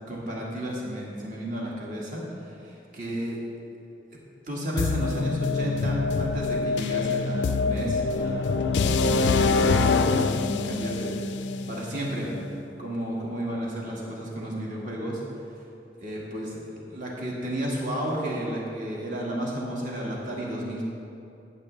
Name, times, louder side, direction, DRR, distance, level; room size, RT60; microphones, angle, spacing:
voice 1, 0.1-2.3 2.6-3.4 4.1-4.2 4.5-11.1 11.7-12.3 12.8-15.2 16.0-20.8, right 1 dB, 45° right, -4 dB, 1.7 m, -32 dB
sound 1, 4.8-12.6, left 4 dB, 85° left, 0.4 m, -25 dB
14.5 x 7.0 x 3.2 m, 2.7 s
head